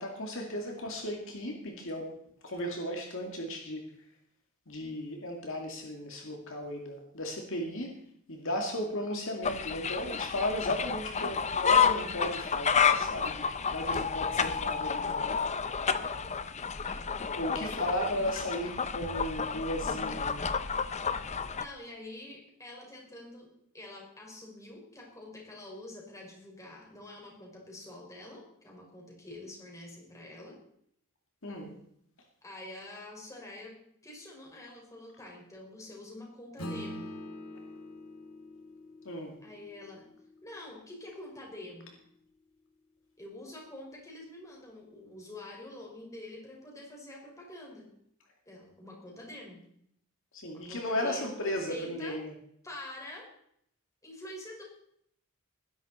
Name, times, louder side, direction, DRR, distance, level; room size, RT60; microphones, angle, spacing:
voice 1, 0.0-2.1 2.4-3.8 4.7-7.9 8.3-15.2 17.3-20.5 31.4-31.8 39.0-39.3 50.3-52.3, left 1 dB, 60° left, 2 dB, 2.3 m, -35 dB
sound 1, 9.4-21.7, left 6 dB, 30° left, 0.7 m, -30 dB
voice 2, 17.6-18.6 21.6-23.5 23.7-30.6 32.4-33.7 34.0-37.1 39.4-40.1 40.4-42.0 43.2-47.9 48.5-49.6 50.5-52.2 52.6-53.3 54.0-54.6, left 1 dB, 15° left, -1 dB, 5.3 m, -46 dB
Acoustic guitar / Strum, 36.6-41.4, left 1 dB, 80° left, 2.4 m, -44 dB
20.0 x 11.0 x 4.3 m, 0.70 s
head